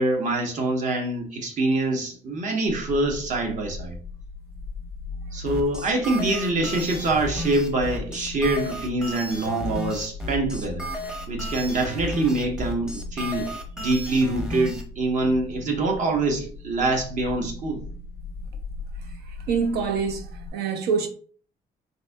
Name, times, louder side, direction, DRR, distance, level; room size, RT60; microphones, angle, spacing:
voice 1, 0.0-4.0 5.3-10.9 11.3-17.8, right 2 dB, 45° right, 0.9 m, -25 dB
sound 1, 2.7-20.5, left 2 dB, 80° left, 0.4 m, -38 dB
sound 2, 5.5-14.8, left 1 dB, 5° right, 0.8 m, -34 dB
voice 2, 19.5-21.1, right 5 dB, 70° right, 0.7 m, -25 dB
4.1 x 2.6 x 2.2 m
cardioid pair, 110°, 17 cm